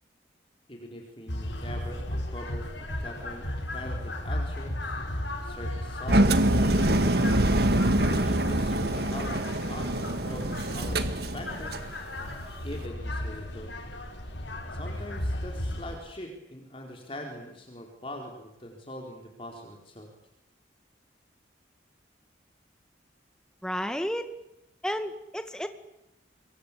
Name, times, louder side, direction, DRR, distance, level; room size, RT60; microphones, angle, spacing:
voice 1, 0.7-4.7 5.4-7.2 8.1-11.8 12.6-13.7 14.6-20.1, left 1 dB, 30° left, 2 dB, 4.5 m, -42 dB
sound 1, 1.3-16.0, left 1 dB, 75° left, 5.7 m, -34 dB
Engine, 6.1-11.9, right 1 dB, 55° right, 2.0 m, -25 dB
voice 2, 23.6-24.3 24.8-25.7, equal, 5° left, 8 dB, 2.2 m, -31 dB
27.0 x 23.0 x 8.7 m, 0.88 s
head